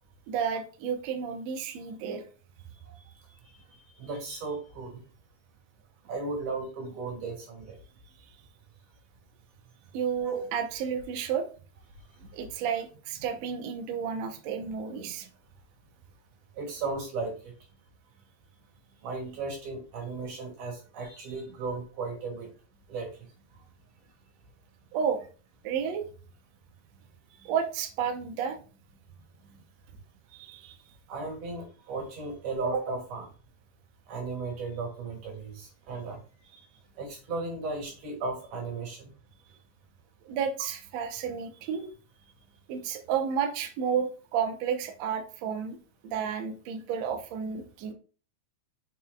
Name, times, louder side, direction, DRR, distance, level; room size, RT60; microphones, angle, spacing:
voice 1, 0.3-2.2 9.9-11.5 12.3-15.3 24.9-25.2 25.6-26.0 27.4-28.6 30.3-30.7 40.2-41.9 42.7-45.8 46.0-47.9, right 7 dB, 85° right, 6 dB, 1.5 m, -31 dB
voice 2, 4.0-5.0 6.1-7.8 10.2-10.5 16.6-17.5 19.0-22.5 22.9-23.1 31.1-33.3 34.1-36.2 37.0-39.1, right 3 dB, 55° right, 0 dB, 3.8 m, -35 dB
6.8 x 6.6 x 2.3 m, 0.37 s
omnidirectional pair, 4.4 m